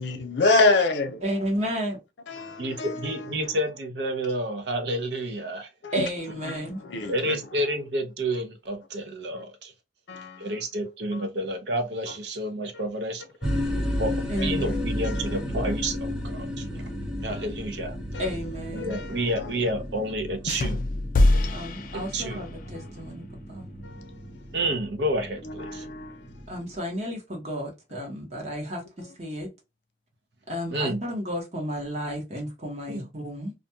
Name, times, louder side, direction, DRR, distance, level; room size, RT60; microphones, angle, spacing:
voice 1, 0.0-1.1 2.3-3.6 5.8-6.1 6.4-7.4 9.3-9.4 10.1-10.5 11.1-11.2 13.4-14.0 14.4-15.5 17.3-17.5 18.1-18.3 18.8-19.5 21.3-21.7 22.3-22.5 22.7-23.1 23.8-24.3 25.4-26.3, left 3 dB, 85° left, 0.7 m, -29 dB
voice 2, 1.2-2.0 5.9-6.8 14.3-14.8 18.2-19.0 21.5-23.7 26.5-29.5 30.5-33.5, equal, 40° right, 1.1 m, -32 dB
voice 3, 2.6-5.7 7.1-9.7 10.4-13.2 14.0-14.1 14.4-16.9 17.2-18.0 18.7-20.8 21.9-22.4 24.5-25.9 30.7-31.0 32.9-33.1, right 1 dB, 75° right, 0.6 m, -30 dB
sound 1, 13.4-26.7, left 1 dB, 5° right, 0.5 m, -33 dB
sound 2, 20.5-22.7, left 2 dB, 50° left, 0.3 m, -24 dB
2.5 x 2.3 x 2.7 m
head